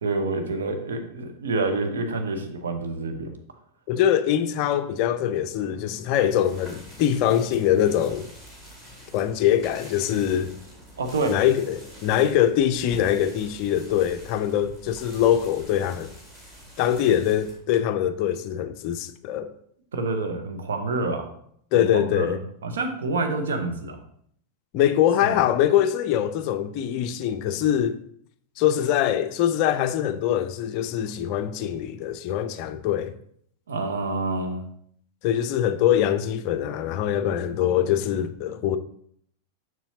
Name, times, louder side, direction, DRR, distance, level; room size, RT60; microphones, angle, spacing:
voice 1, 0.0-3.3 11.0-11.3 19.9-21.3 21.7-24.0 25.2-25.4 33.7-34.6, right 3 dB, 65° right, 0.9 m, -28 dB
voice 2, 3.9-8.3 9.1-10.5 11.3-16.1 16.8-19.5 21.7-22.4 24.7-28.0 28.6-33.1 35.2-38.8, left 10 dB, 45° left, 0.4 m, -23 dB
sound 1, 6.2-17.6, equal, 25° right, 2.4 m, -46 dB
7.0 x 6.1 x 2.7 m
figure-of-eight pair, 90°, 0 cm